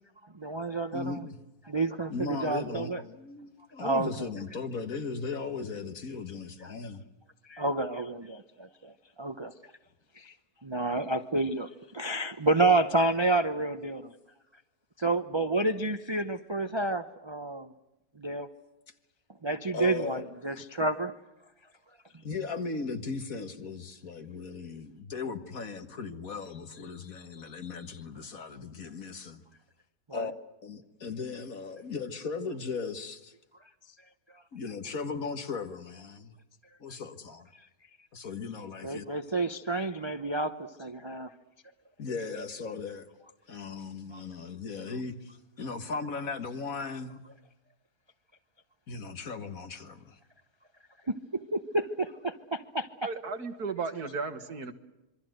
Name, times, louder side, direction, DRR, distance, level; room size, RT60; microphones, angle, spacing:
voice 1, 0.3-1.2 1.7-3.0 3.8-4.3 7.5-8.9 9.2-9.5 10.2-10.3 10.6-14.1 15.0-17.7 18.2-18.5 19.4-21.1 27.3-27.6 30.1-30.3 36.9-37.0 38.8-41.3 44.1-44.2 51.1-52.9, right 2 dB, 20° right, 7 dB, 0.8 m, -30 dB
voice 2, 0.9-1.4 2.1-7.0 19.7-20.3 20.5-20.6 22.2-29.4 30.1-30.3 30.6-33.3 34.5-36.3 36.8-37.5 38.1-39.0 42.0-43.1 43.5-45.3 45.6-47.3 48.9-50.2, left 4 dB, 60° left, 8 dB, 2.0 m, -37 dB
voice 3, 53.0-54.7, right 4 dB, 75° right, 8 dB, 2.2 m, -34 dB
26.5 x 23.5 x 7.9 m, 0.96 s
omnidirectional pair, 1.7 m